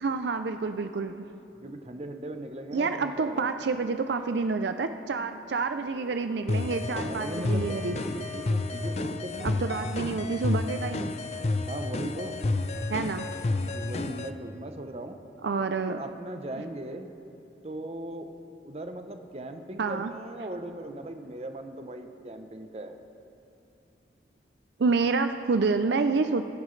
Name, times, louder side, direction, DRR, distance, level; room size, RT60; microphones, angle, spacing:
voice 1, 0.0-1.2 2.7-8.0 9.4-11.1 12.9-13.3 15.4-16.0 19.8-20.1 24.8-26.5, right 4 dB, 75° right, 8 dB, 0.5 m, -28 dB
voice 2, 1.6-3.5 6.9-9.6 11.6-12.4 13.7-15.2 15.8-17.1 17.6-18.3 18.6-23.0, right 1 dB, 35° right, 6 dB, 0.7 m, -38 dB
Wind instrument woodwind instrument, 5.5-9.0, equal, 5° left, 2.2 m, -48 dB
sound 1, 6.5-14.3, left 2 dB, 35° left, 0.4 m, -30 dB
23.0 x 10.5 x 3.2 m, 2.8 s
head